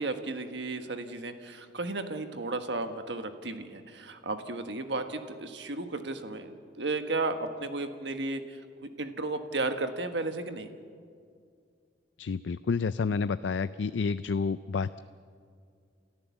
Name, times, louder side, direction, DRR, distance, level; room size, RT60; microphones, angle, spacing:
voice 1, 0.0-10.7, right 2 dB, 75° right, 7 dB, 1.4 m, -34 dB
voice 2, 12.2-15.0, left 5 dB, 85° left, 14 dB, 0.4 m, -29 dB
29.0 x 14.0 x 7.2 m, 2.2 s
head